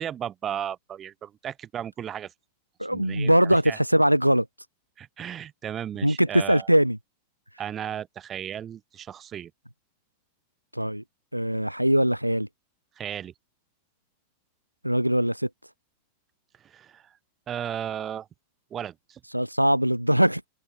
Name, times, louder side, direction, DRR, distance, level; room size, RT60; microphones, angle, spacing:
voice 1, 0.0-2.3 2.9-3.8 5.0-6.7 7.6-9.5 13.0-13.3 16.6-17.0 17.5-18.3 18.7-19.2, right 9 dB, 25° right, 1.1 m, -35 dB
voice 2, 2.8-4.5 6.0-7.0 10.7-11.0 11.3-12.5 14.8-15.5 19.3-20.4, equal, 90° right, 0.6 m, -21 dB
figure-of-eight pair, 90°, 0 cm